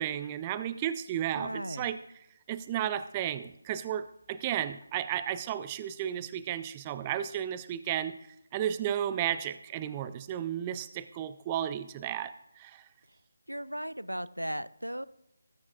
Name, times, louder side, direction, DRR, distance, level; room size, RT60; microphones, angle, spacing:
voice 1, 0.0-2.0 2.5-8.2 8.5-12.8, right 10 dB, 20° right, 14 dB, 0.4 m, -33 dB
voice 2, 1.3-1.9 13.5-15.1, equal, 85° right, 17 dB, 0.5 m, -36 dB
19.5 x 9.5 x 2.4 m, 0.85 s
figure-of-eight pair, 155°, 0 cm